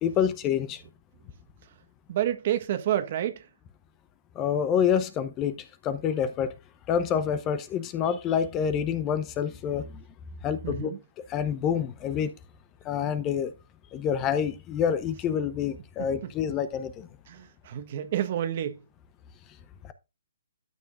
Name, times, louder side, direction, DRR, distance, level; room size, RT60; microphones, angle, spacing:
voice 1, 0.0-0.8 4.4-5.6 5.8-6.5 6.9-10.0 10.4-10.9 11.3-12.3 12.8-13.5 13.9-17.1 19.8-19.9, left 8 dB, 20° left, 0.8 m, -27 dB
voice 2, 2.1-3.4 10.6-11.0 17.3-18.8, right 11 dB, 45° right, 1.2 m, -29 dB
12.5 x 7.0 x 2.5 m
hypercardioid pair, 145°, 0 cm